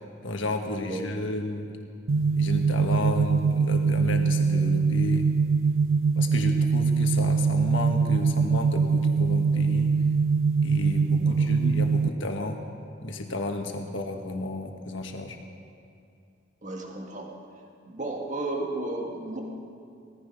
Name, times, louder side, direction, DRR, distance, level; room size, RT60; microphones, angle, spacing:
voice 1, 0.2-1.7 2.3-5.2 6.2-10.0 10.6-12.7 13.0-15.4, left 2 dB, 70° left, 4 dB, 1.5 m, -32 dB
sound 1, 2.1-12.1, right 5 dB, 80° right, 0.4 m, -23 dB
voice 2, 11.2-11.5 16.6-17.3 17.9-19.4, right 2 dB, 40° right, 0 dB, 1.9 m, -33 dB
17.5 x 14.5 x 5.4 m, 2.5 s
head